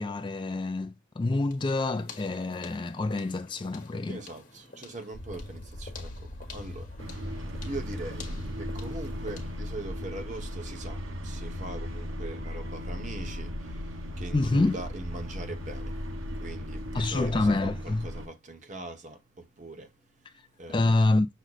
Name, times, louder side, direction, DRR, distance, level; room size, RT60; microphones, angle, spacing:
voice 1, 0.0-4.2 14.3-14.8 16.9-18.1 20.7-21.3, left 2 dB, 25° left, 0.3 m, -27 dB
sound 1, 1.5-9.7, left 4 dB, 40° left, 1.2 m, -49 dB
voice 2, 4.1-6.9 7.6-8.3 8.6-21.1, right 2 dB, 40° right, 0.9 m, -42 dB
sound 2, 5.1-17.5, left 1 dB, 85° left, 1.0 m, -42 dB
sound 3, 7.0-18.3, equal, 85° right, 0.9 m, -38 dB
6.2 x 2.1 x 3.9 m
head